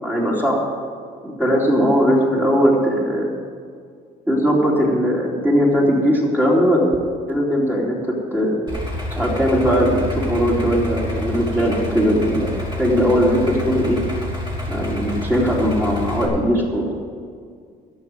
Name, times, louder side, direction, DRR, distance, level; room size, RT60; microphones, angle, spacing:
voice 1, 0.0-0.6 1.2-3.3 4.3-6.9 7.3-8.7 9.1-14.0 14.7-16.9, equal, 10° right, -4 dB, 3.0 m, -19 dB
Idling, 8.7-16.2, left 1 dB, 25° right, 3.4 m, -28 dB
12.0 x 7.2 x 9.2 m, 2.1 s
cardioid pair, 110°, 17 cm